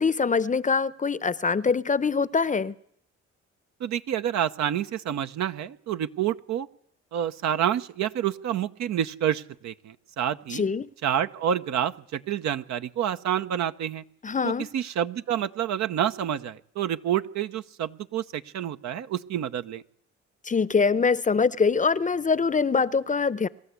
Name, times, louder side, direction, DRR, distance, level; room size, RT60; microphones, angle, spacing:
voice 1, 0.0-2.7 10.5-10.9 14.2-14.7 20.4-23.5, left 5 dB, 25° left, 0.7 m, -24 dB
voice 2, 3.8-6.7 7.1-10.6 11.0-14.0 14.4-19.8, right 10 dB, 65° right, 0.9 m, -28 dB
24.0 x 13.0 x 8.3 m
supercardioid pair, 65°, 29 cm